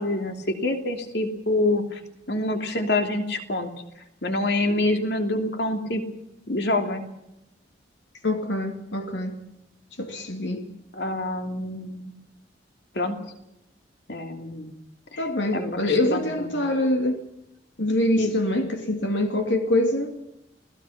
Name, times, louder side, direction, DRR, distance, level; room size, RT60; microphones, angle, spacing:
voice 1, 0.0-2.0 2.3-3.7 4.2-6.0 6.5-7.1 10.9-12.2 12.9-13.2 14.1-14.7 15.1-15.2 15.5-16.5 18.2-18.4, left 2 dB, 60° left, 2.9 m, -26 dB
voice 2, 8.2-9.4 10.0-10.7 15.2-17.2 17.8-20.2, left 1 dB, 75° left, 2.7 m, -24 dB
29.5 x 19.0 x 5.9 m
head